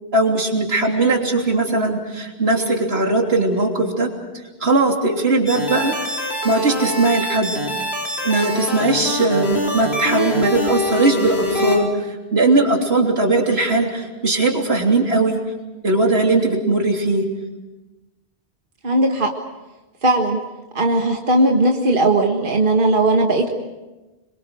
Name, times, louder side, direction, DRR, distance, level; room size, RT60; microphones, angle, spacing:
voice 1, 0.1-4.1 4.6-6.0 6.4-7.6 8.2-15.4 15.8-17.3, right 2 dB, 85° right, 1 dB, 3.5 m, -19 dB
sound 1, 5.5-11.8, left 1 dB, 90° left, 5.0 m, -24 dB
voice 2, 18.8-19.3 20.0-20.4 20.8-23.5, right 2 dB, 55° right, 1 dB, 2.0 m, -17 dB
26.5 x 23.0 x 6.4 m, 1.1 s
omnidirectional pair, 1.0 m